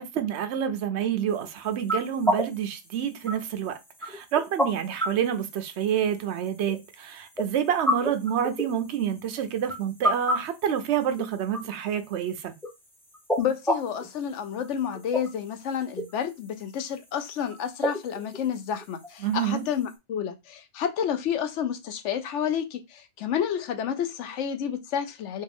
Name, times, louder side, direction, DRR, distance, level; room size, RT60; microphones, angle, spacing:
voice 1, 0.0-12.5 19.2-19.6, right 9 dB, 75° right, 0.9 m, -28 dB
sound 1, 1.3-19.9, equal, 5° left, 0.5 m, -33 dB
voice 2, 13.4-25.4, left 8 dB, 85° left, 1.0 m, -30 dB
4.3 x 2.5 x 3.5 m
omnidirectional pair, 1.2 m